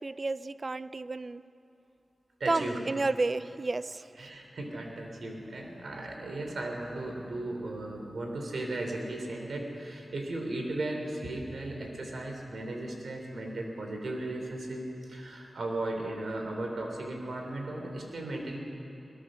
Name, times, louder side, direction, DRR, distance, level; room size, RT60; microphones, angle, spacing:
voice 1, 0.0-1.4 2.5-4.3, right 3 dB, 50° right, 15 dB, 0.5 m, -31 dB
voice 2, 2.4-2.8 4.2-18.6, right 2 dB, 80° right, 2 dB, 3.5 m, -36 dB
22.0 x 19.5 x 6.4 m, 2.8 s
cardioid pair, 60°, 0 cm